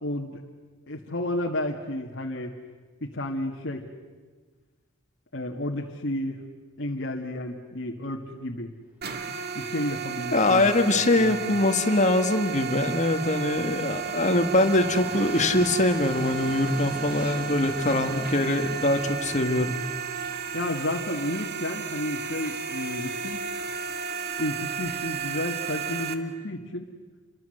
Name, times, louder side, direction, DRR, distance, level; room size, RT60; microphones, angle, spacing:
voice 1, 0.0-0.4 0.9-2.5 3.0-3.8 5.3-6.4 6.8-8.7 9.5-11.6 20.5-23.4 24.4-26.9, left 1 dB, 55° left, 0 dB, 2.1 m, -32 dB
sound 1, 9.0-26.1, right 6 dB, 50° right, 2.1 m, -33 dB
Train, 9.5-25.5, equal, 5° right, 3.3 m, -47 dB
voice 2, 10.3-19.7, left 2 dB, 35° left, 6 dB, 1.9 m, -23 dB
29.5 x 24.0 x 8.0 m, 1.4 s
head